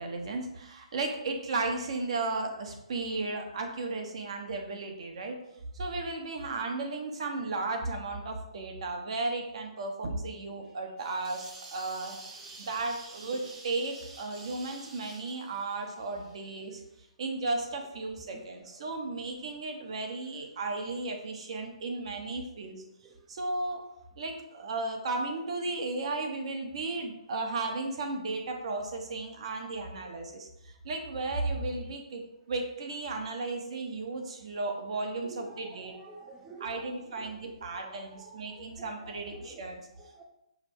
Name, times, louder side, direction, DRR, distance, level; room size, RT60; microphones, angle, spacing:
voice 1, 0.0-5.4 5.7-12.2 12.6-16.8 17.2-22.8 23.3-23.9 24.2-35.9 36.6-39.9, right 3 dB, 55° right, 3 dB, 0.9 m, -35 dB
sound 1, 11.0-16.8, right 3 dB, 30° right, 1.1 m, -49 dB
voice 2, 18.2-19.0 23.0-23.2 30.0-30.1 31.8-31.9 35.2-40.2, right 3 dB, 15° right, 0 dB, 0.4 m, -51 dB
5.2 x 2.0 x 4.5 m, 0.84 s
hypercardioid pair, 155°, 4 cm